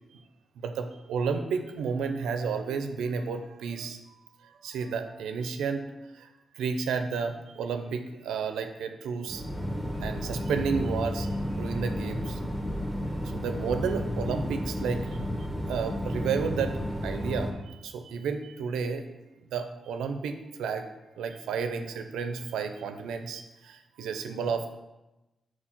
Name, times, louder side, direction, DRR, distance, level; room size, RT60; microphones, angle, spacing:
voice 1, 0.6-4.0 4.4-6.3 6.5-9.4 10.0-12.4 13.2-15.2 15.7-19.1 19.5-20.9 21.2-24.7, right 5 dB, 85° right, 7 dB, 0.4 m, -32 dB
sound 1, 9.3-17.5, equal, 10° left, 1.6 m, -32 dB
4.5 x 4.4 x 5.8 m, 1.0 s
supercardioid pair, 45°, 0 cm